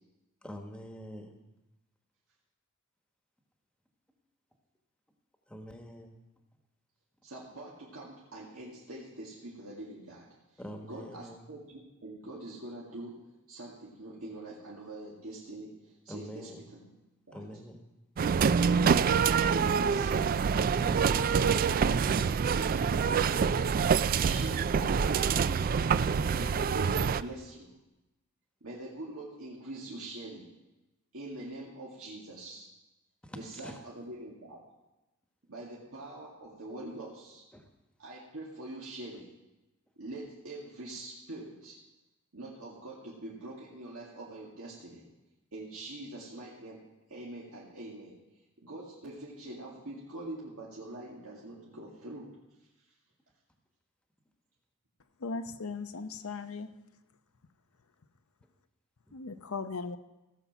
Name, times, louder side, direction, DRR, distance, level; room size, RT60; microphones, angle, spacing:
voice 1, 0.4-1.3 5.5-6.1 10.6-11.4 16.1-16.6 17.3-17.8 20.6-21.2 33.2-33.4 33.6-33.8 37.5-37.6, equal, 5° left, 4 dB, 1.2 m, -45 dB
voice 2, 7.2-13.2 13.5-16.9 17.3-17.4 18.6-20.3 22.3-23.6 23.9-25.7 26.4-27.7 28.6-30.5 31.1-32.7 33.4-34.6 35.5-37.5 38.0-39.3 40.0-41.8 42.3-45.1 45.5-46.8 47.1-48.2 48.6-52.3, right 1 dB, 90° right, -6 dB, 2.1 m, -44 dB
sound 1, 18.2-27.2, right 6 dB, 45° right, 0.3 m, -26 dB
voice 3, 55.2-56.7 59.1-60.0, left 4 dB, 90° left, 11 dB, 0.8 m, -38 dB
16.5 x 7.1 x 5.9 m, 0.99 s
head